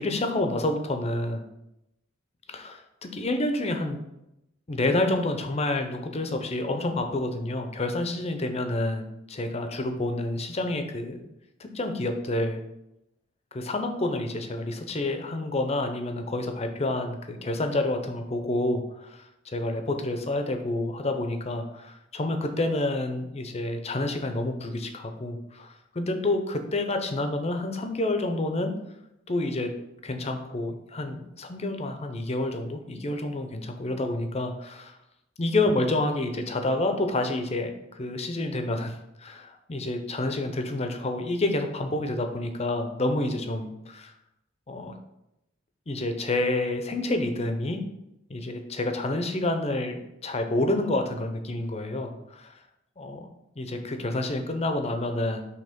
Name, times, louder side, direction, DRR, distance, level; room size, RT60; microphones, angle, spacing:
voice 1, 0.0-1.4 2.5-4.0 4.7-11.2 11.6-12.6 13.5-28.7 29.3-29.7 30.0-35.0 35.4-44.1 44.7-45.0 45.9-47.8 48.3-52.6 53.0-53.3 53.6-55.5, left 2 dB, 30° left, 6 dB, 0.6 m, -29 dB
5.5 x 3.4 x 5.1 m, 0.87 s
head